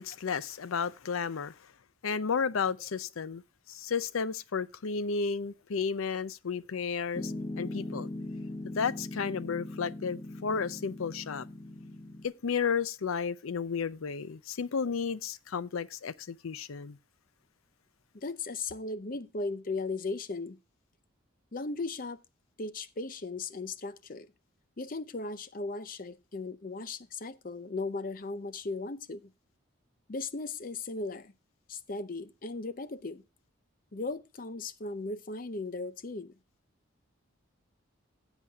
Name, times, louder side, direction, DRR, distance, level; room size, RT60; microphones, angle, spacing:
voice 1, 0.0-1.5 2.0-3.4 3.7-8.1 8.8-11.5 12.2-17.0, left 5 dB, 85° left, 0.5 m, -33 dB
Piano, 7.1-12.2, left 1 dB, 20° left, 1.2 m, -40 dB
voice 2, 18.1-20.6 21.5-22.2 22.6-24.3 24.8-29.3 30.1-31.3 31.7-33.2 33.9-36.3, left 3 dB, 40° left, 0.6 m, -37 dB
16.0 x 8.2 x 2.3 m
head